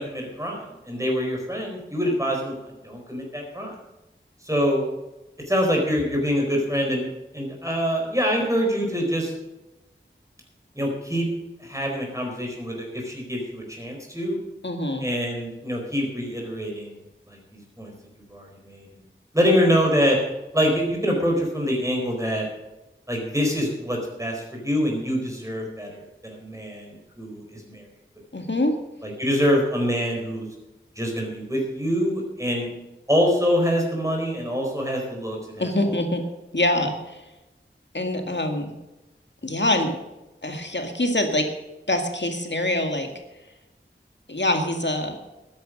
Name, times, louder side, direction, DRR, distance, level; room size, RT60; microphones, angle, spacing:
voice 1, 0.0-2.5 2.8-3.7 4.4-4.8 5.5-7.1 7.3-9.3 10.7-11.3 11.6-14.4 15.0-17.0 17.3-17.9 18.3-18.9 19.3-20.2 20.5-22.5 23.1-27.8 29.0-30.5 31.0-32.7 33.1-36.0, equal, 15° right, 0 dB, 4.4 m, -25 dB
voice 2, 14.6-15.0 28.3-28.7 35.6-36.2 36.5-37.0 37.9-38.7 39.4-39.9 40.4-41.5 41.9-43.1 44.3-45.1, left 1 dB, 60° left, 5 dB, 1.9 m, -24 dB
13.0 x 10.0 x 6.4 m, 0.99 s
wide cardioid pair, 40°, 21 cm